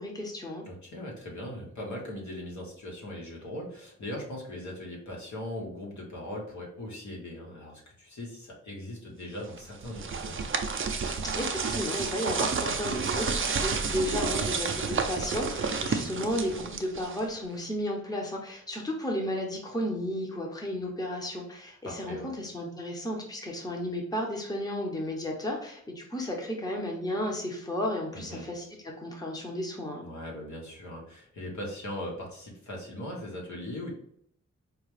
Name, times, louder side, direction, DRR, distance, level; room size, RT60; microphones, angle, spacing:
voice 1, 0.0-0.6 11.3-28.6 29.0-30.1, left 1 dB, 15° left, 0 dB, 0.8 m, -33 dB
voice 2, 0.7-10.4 21.8-22.3 28.1-28.5 30.0-33.9, left 1 dB, 75° left, -2 dB, 1.4 m, -39 dB
sound 1, 9.6-17.4, right 5 dB, 45° right, 0.5 m, -30 dB
4.7 x 2.3 x 3.2 m, 0.67 s
wide cardioid pair, 105°, 29 cm